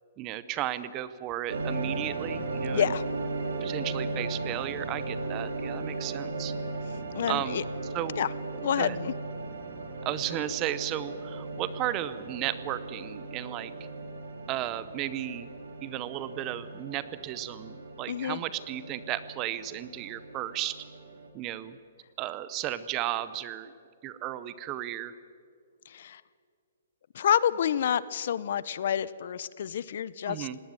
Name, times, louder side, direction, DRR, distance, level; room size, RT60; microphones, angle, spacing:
voice 1, 0.2-2.9 3.6-6.5 7.3-7.6 7.9-8.2 8.8-9.0 10.1-13.7 14.5-15.5 15.8-20.8 21.3-21.8 22.2-23.7 24.0-25.1 30.3-30.6, right 13 dB, 20° right, 15 dB, 0.7 m, -34 dB
sound 1, 1.5-21.3, right 3 dB, 85° right, 3.2 m, -37 dB
voice 2, 2.7-3.0 7.1-7.6 8.2-8.3 8.6-9.1 18.1-18.4 25.9-26.2 27.1-30.5, left 9 dB, 50° left, 18 dB, 0.6 m, -28 dB
19.0 x 18.5 x 8.9 m, 2.3 s
hypercardioid pair, 170°, 0 cm